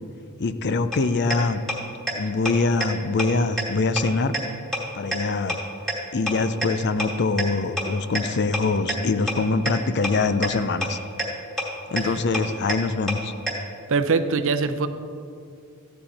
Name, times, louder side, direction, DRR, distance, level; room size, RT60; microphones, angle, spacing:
voice 1, 0.4-1.6 2.2-4.3 4.9-5.6 6.1-11.0 11.9-13.3, left 3 dB, 50° left, 12 dB, 0.6 m, -24 dB
sound 1, 0.9-1.0 1.3-1.4 1.7-1.8 2.1-2.2 2.5-2.6 2.8-2.9 3.2-3.3 3.6-3.7 4.0-4.1 4.3-4.4 4.7-4.8 5.1-5.2 5.5-5.6 5.9-6.0 6.3-6.4 6.6-6.7 7.0-7.1 7.4-7.5 7.8-7.9 8.1-8.2 8.5-8.6 8.9-9.0 9.3-9.4 9.7-9.8 10.0-10.1 10.4-10.5 10.8-10.9 11.2-11.3 11.6-11.7 12.0-12.1 12.3-12.4 12.7-12.8 13.1-13.2 13.5-13.6, equal, ahead, 2.4 m, -24 dB
voice 2, 13.9-14.9, right 4 dB, 60° right, 9 dB, 0.7 m, -23 dB
15.0 x 11.5 x 4.3 m, 2.4 s
head